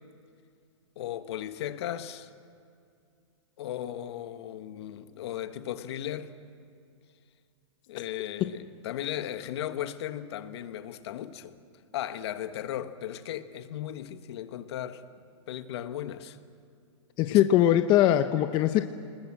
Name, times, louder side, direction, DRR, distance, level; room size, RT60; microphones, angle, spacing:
voice 1, 0.9-2.3 3.6-6.3 7.9-11.6 11.9-15.1 15.5-16.4 17.3-17.4, left 11 dB, 60° left, 1.5 m, -36 dB
voice 2, 17.2-18.9, left 12 dB, 30° left, 0.8 m, -21 dB
28.5 x 20.5 x 7.7 m
hypercardioid pair, 140°, 16 cm